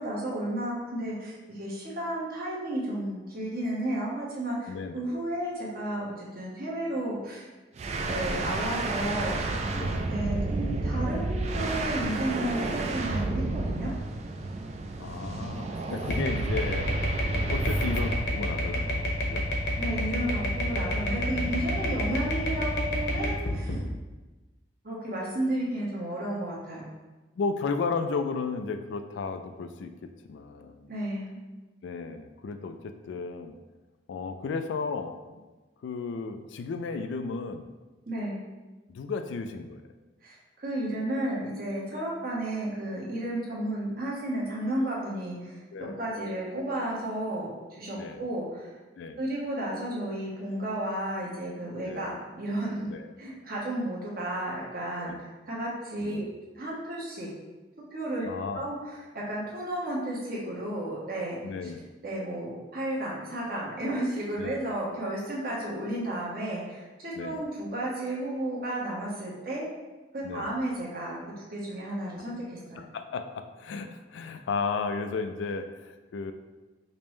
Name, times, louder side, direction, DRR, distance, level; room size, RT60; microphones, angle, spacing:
voice 1, 0.0-7.5 8.0-9.4 10.1-13.9 19.8-23.8 24.8-26.8 30.9-31.4 38.1-38.4 40.2-48.7 49.2-52.9 53.2-55.1 55.5-56.3 56.5-57.3 57.9-58.3 58.5-61.7 62.0-69.7 70.1-72.8, right 1 dB, 55° right, -5 dB, 1.0 m, -33 dB
sound 1, 7.8-18.3, right 2 dB, 35° right, 0.3 m, -31 dB
voice 2, 9.8-10.1 15.0-16.9 17.5-19.5 21.3-21.9 27.4-30.9 31.8-33.6 34.1-35.5 35.8-37.7 38.9-39.8 41.9-42.0 45.7-46.0 47.9-48.2 49.0-49.2 51.8-52.1 52.9-53.1 55.0-55.2 56.0-56.3 58.2-58.7 61.4-61.9 64.4-64.6 67.2-67.4 70.2-70.5 72.8-76.3, left 4 dB, 80° left, 8 dB, 0.3 m, -34 dB
sound 2, 16.1-23.8, left 1 dB, 65° left, 0.8 m, -29 dB
5.2 x 2.1 x 3.1 m, 1.2 s
head